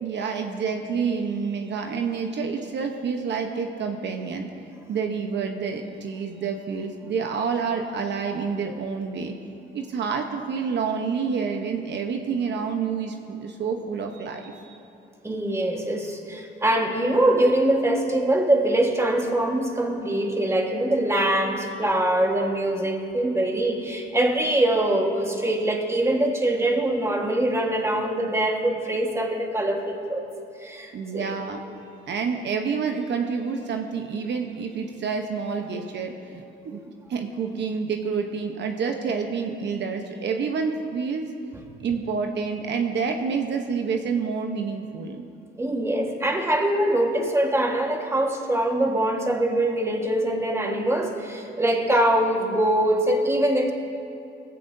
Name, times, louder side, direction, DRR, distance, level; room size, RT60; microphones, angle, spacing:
voice 1, 0.0-4.5 4.9-9.3 9.7-14.8 30.9-31.6 32.1-41.3 41.8-45.2, right 5 dB, 60° right, 4 dB, 1.0 m, -28 dB
voice 2, 15.2-30.2 30.6-31.3 45.6-53.7, right 1 dB, 15° right, 2 dB, 1.5 m, -23 dB
18.0 x 15.5 x 2.7 m, 2.7 s
cardioid pair, 90°, 20 cm